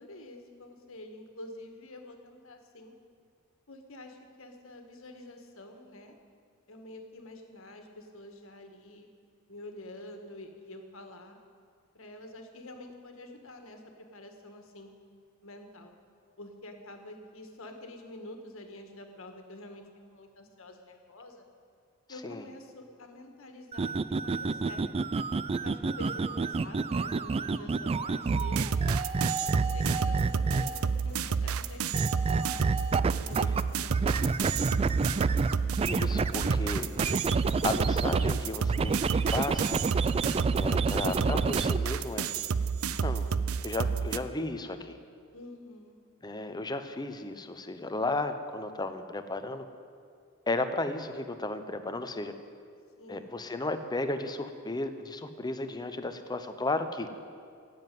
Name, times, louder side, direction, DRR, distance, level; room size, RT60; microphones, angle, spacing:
voice 1, 0.0-2.9 3.7-6.1 6.7-9.1 9.5-11.4 11.9-14.9 15.4-15.9 16.4-19.8 20.1-21.5 22.1-25.1 25.6-28.7 29.4-32.6 33.1-34.4 45.3-46.0 53.0-53.5, left 1 dB, 70° left, 4 dB, 1.7 m, -47 dB
sound 1, 23.7-30.9 31.9-33.6 33.9-38.3 38.7-41.8, right 4 dB, 30° right, 0.3 m, -29 dB
sound 2, 28.3-44.2, right 6 dB, 85° right, 0.5 m, -30 dB
voice 2, 35.9-36.9 37.6-39.0 39.3-39.8 40.5-42.3 43.0-43.3 43.6-45.0 46.2-49.7 50.5-52.3 53.1-57.1, left 2 dB, 20° left, 9 dB, 0.8 m, -34 dB
16.0 x 7.8 x 9.3 m, 2.3 s
head